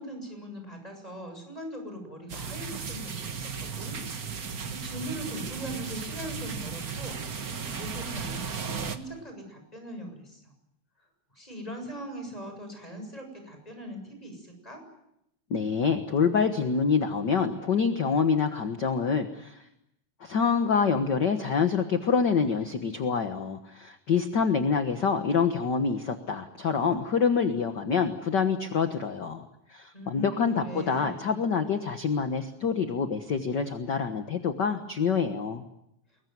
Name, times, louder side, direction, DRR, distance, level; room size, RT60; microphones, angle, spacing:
voice 1, 0.0-4.0 4.2-10.5 11.3-14.8 29.9-31.4, equal, 10° left, 4 dB, 7.5 m, -41 dB
sound 1, 2.3-9.0, right 6 dB, 40° right, 1.5 m, -35 dB
voice 2, 15.5-19.6 20.2-35.6, left 5 dB, 45° left, 7 dB, 1.6 m, -26 dB
26.0 x 22.5 x 9.5 m, 0.82 s
omnidirectional pair, 3.3 m